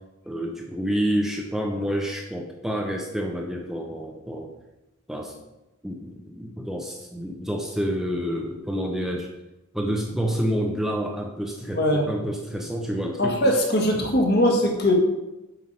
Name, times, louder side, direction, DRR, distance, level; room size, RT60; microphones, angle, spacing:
voice 1, 0.3-4.5 5.1-5.3 5.8-9.3 9.7-13.4 13.9-14.0, equal, ahead, 0 dB, 0.7 m, -28 dB
voice 2, 11.7-12.1 13.2-15.0, equal, 50° left, 0 dB, 1.7 m, -21 dB
7.8 x 5.8 x 5.4 m, 0.97 s
head